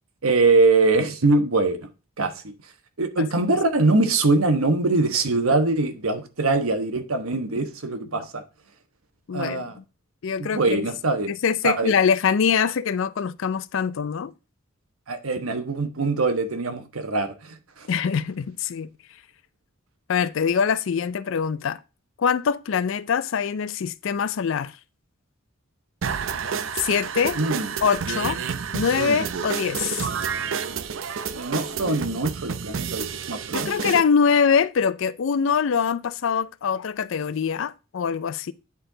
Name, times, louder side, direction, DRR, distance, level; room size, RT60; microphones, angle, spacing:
voice 1, 0.2-1.9 2.2-2.5 3.0-8.4 9.3-9.7 10.4-11.3 11.6-11.9 15.1-17.9 27.4-27.7 31.3-33.7, right 3 dB, 85° right, 1.1 m, -23 dB
voice 2, 9.3-9.7 10.2-10.9 11.3-14.3 17.9-18.9 20.1-21.8 22.2-24.7 26.7-27.4 27.8-28.4 28.7-30.1 33.5-38.5, left 6 dB, 65° left, 0.4 m, -23 dB
sound 1, 26.0-34.0, right 6 dB, 65° right, 0.6 m, -29 dB
9.6 x 4.4 x 3.8 m
head